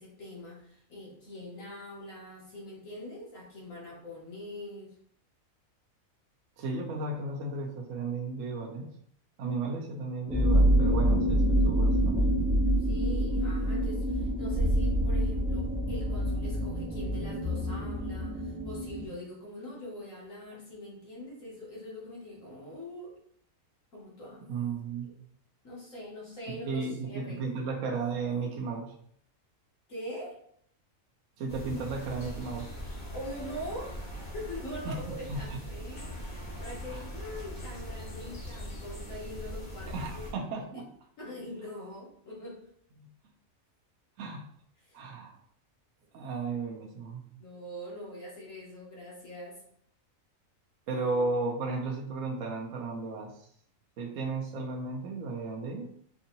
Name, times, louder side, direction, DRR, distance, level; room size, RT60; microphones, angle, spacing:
voice 1, 0.0-4.9 9.7-9.8 12.8-23.1 23.9-24.5 25.6-27.4 29.9-30.4 33.1-40.3 40.7-40.8 41.2-42.6 44.8-45.0 47.4-49.6, left 1 dB, 70° left, -5 dB, 1.6 m, -43 dB
voice 2, 6.6-8.9 9.4-12.4 24.5-25.1 26.5-28.9 31.4-32.7 34.9-35.0 35.3-35.6 36.9-37.0 39.9-40.9 43.0-43.1 44.2-44.4 44.9-45.4 46.1-47.2 50.9-53.5 54.0-55.8, right 3 dB, 70° right, 0 dB, 1.0 m, -34 dB
sound 1, 10.3-19.1, equal, 10° right, 0.6 m, -26 dB
sound 2, 31.5-40.3, equal, 40° left, 1.4 m, -41 dB
4.6 x 2.7 x 2.6 m, 0.65 s
omnidirectional pair, 1.4 m